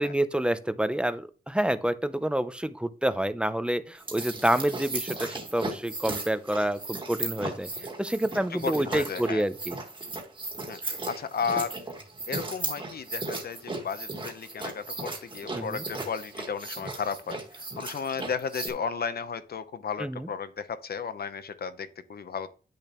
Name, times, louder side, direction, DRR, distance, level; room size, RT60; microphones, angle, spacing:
voice 1, 0.0-7.7 8.0-9.8 15.5-15.8 20.0-20.3, right 1 dB, 5° right, 12 dB, 0.5 m, -28 dB
sound 1, 3.9-18.7, right 2 dB, 25° right, 1.6 m, -36 dB
voice 2, 8.5-9.4 10.7-11.7 12.3-22.5, left 6 dB, 60° left, 12 dB, 0.8 m, -34 dB
10.0 x 6.6 x 3.0 m, 0.36 s
wide cardioid pair, 175°, 18 cm